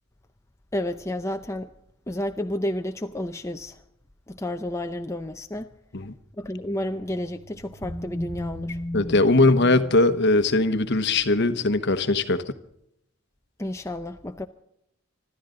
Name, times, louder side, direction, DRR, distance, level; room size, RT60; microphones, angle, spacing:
voice 1, 0.7-1.7 2.1-3.8 4.3-5.7 6.4-8.8 13.6-14.5, left 1 dB, 15° left, 0.6 m, -31 dB
sound 1, 6.5-11.8, equal, 20° right, 5.7 m, -37 dB
voice 2, 8.9-12.4, left 2 dB, 55° left, 1.1 m, -20 dB
25.5 x 13.5 x 3.8 m
head